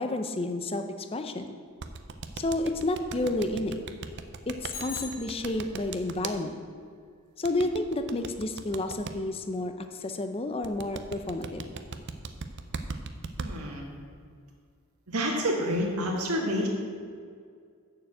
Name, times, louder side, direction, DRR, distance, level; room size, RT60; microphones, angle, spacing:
voice 1, 0.0-1.6 2.4-3.8 4.5-6.6 7.4-11.6, left 2 dB, 25° left, 7 dB, 0.6 m, -30 dB
sound 1, 1.8-6.3 7.4-9.1 10.6-13.5, right 5 dB, 50° right, 0.6 m, -37 dB
Bicycle bell, 4.7-6.0, left 4 dB, 80° left, 2.1 m, -41 dB
voice 2, 13.4-13.9 15.1-16.7, equal, 80° right, -2 dB, 1.6 m, -28 dB
6.9 x 6.7 x 7.8 m, 2.1 s
head